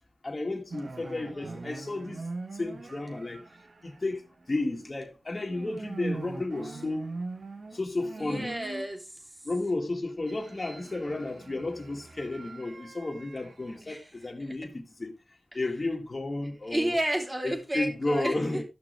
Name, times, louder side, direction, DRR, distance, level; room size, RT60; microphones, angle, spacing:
voice 1, 0.2-2.2 2.6-3.4 3.8-7.1 7.7-8.5 9.5-15.1 15.5-17.0 17.4-18.6, left 2 dB, 45° left, 1.9 m, -32 dB
sound 1, 0.7-5.0 5.3-8.9 10.1-13.8, right 3 dB, 70° right, 1.2 m, -42 dB
voice 2, 1.2-1.5 8.2-9.2 13.8-14.1 14.4-14.6 16.7-18.6, right 1 dB, 30° right, 3.1 m, -32 dB
12.5 x 6.2 x 3.3 m
cardioid pair, 40°, 0 cm